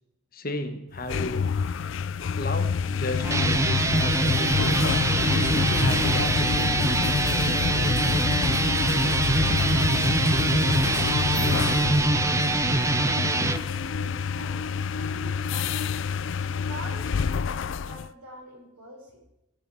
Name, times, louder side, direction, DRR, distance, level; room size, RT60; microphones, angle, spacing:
voice 1, 0.3-1.5 2.3-4.9 5.3-7.0, left 1 dB, 40° left, 6 dB, 1.4 m, -34 dB
sound 1, 0.9-18.1, left 6 dB, 60° left, 0.4 m, -27 dB
sound 2, 3.2-13.6, right 2 dB, 15° right, 0.4 m, -24 dB
voice 2, 10.5-14.7 14.9-16.0 16.6-19.3, right 2 dB, 85° right, -1 dB, 5.4 m, -45 dB
16.5 x 8.5 x 4.8 m, 0.88 s
head